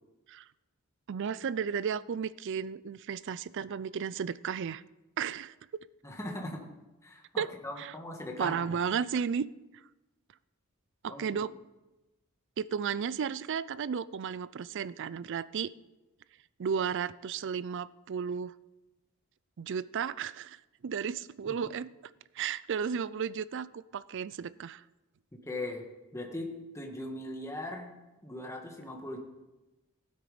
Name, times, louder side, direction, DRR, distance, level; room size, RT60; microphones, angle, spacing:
voice 1, 1.1-4.8 5.2-5.5 7.4-7.5 7.8-7.9 8.4-9.5 11.0-11.5 12.6-15.7 16.6-18.5 19.6-21.9 22.3-24.8, right 7 dB, 55° right, 19 dB, 0.4 m, -34 dB
voice 2, 6.0-6.6 7.0-8.6 11.1-11.2 21.5-21.6 25.4-25.8 26.1-29.2, left 1 dB, 15° left, 1 dB, 1.7 m, -39 dB
15.5 x 8.8 x 5.1 m, 1.1 s
head